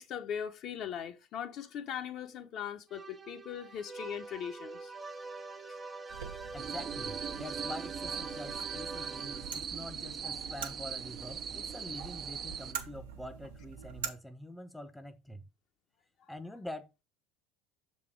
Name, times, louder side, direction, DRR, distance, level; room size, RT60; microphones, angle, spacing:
voice 1, 0.0-4.9 5.7-5.8, left 8 dB, 55° left, 1.0 m, -40 dB
sound 1, 2.9-9.7, right 3 dB, 20° right, 0.9 m, -45 dB
sound 2, 6.1-14.1, right 8 dB, 90° right, 1.1 m, -45 dB
voice 2, 6.5-15.4 16.3-17.0, left 1 dB, 5° left, 0.8 m, -45 dB
sound 3, 6.6-12.7, right 7 dB, 40° right, 0.6 m, -40 dB
6.8 x 4.2 x 4.9 m
hypercardioid pair, 80°, 0 cm